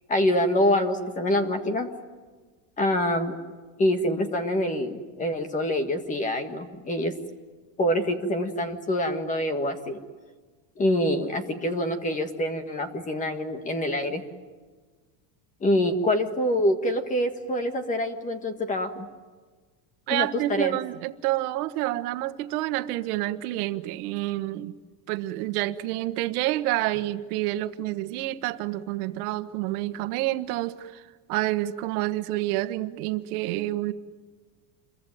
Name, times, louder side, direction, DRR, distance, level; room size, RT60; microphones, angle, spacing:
voice 1, 0.1-1.9 2.8-3.4 3.8-7.1 7.8-10.0 10.8-14.2 15.6-19.1 20.1-20.8, left 1 dB, 15° left, 1.6 m, -25 dB
voice 2, 20.1-24.7 25.1-33.9, right 16 dB, 75° right, 1.3 m, -28 dB
27.5 x 23.0 x 9.2 m
cardioid pair, 180°, 45 cm